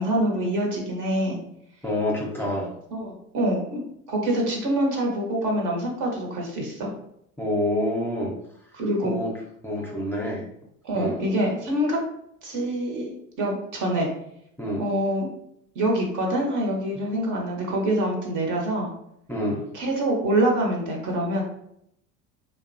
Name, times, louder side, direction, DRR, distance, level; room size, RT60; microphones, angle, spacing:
voice 1, 0.0-1.4 2.9-3.8 4.1-6.9 8.7-9.1 10.8-12.0 12.4-13.1 13.4-14.1 14.8-15.3 15.7-18.9 19.7-21.4, right 1 dB, 50° right, 0 dB, 1.0 m, -25 dB
voice 2, 1.8-2.7 7.4-8.3 9.0-9.3 9.6-10.4 10.9-11.2 14.6-14.8 19.3-19.6, left 1 dB, 5° left, -4 dB, 0.6 m, -27 dB
2.6 x 2.2 x 2.6 m, 0.74 s
hypercardioid pair, 75°, 39 cm